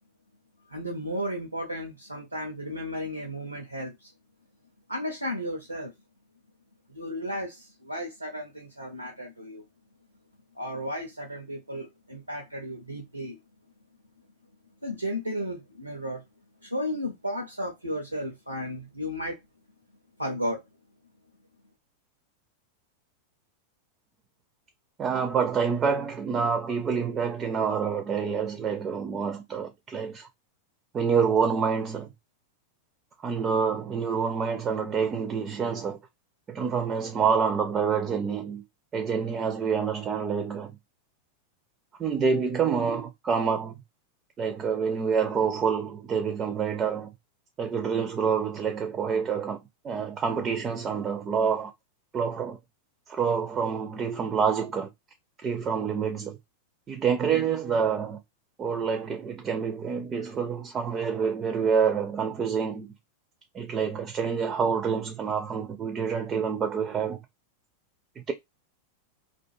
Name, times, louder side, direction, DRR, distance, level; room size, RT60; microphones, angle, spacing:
voice 1, 0.7-4.1 4.9-5.9 6.9-9.6 10.5-13.4 14.8-16.2 16.6-19.4 20.2-20.6, equal, 85° right, 0.5 m, -34 dB
voice 2, 25.0-30.3 30.9-32.1 33.2-36.0 36.5-38.6 38.9-40.7 42.0-43.8 44.4-47.1 47.6-51.7 52.1-52.6 53.1-54.9 55.4-56.4 56.9-58.2 58.6-62.9 63.5-67.2 68.2-68.3, right 6 dB, 25° right, 0.4 m, -27 dB
2.4 x 2.2 x 2.6 m
figure-of-eight pair, 90°, 0 cm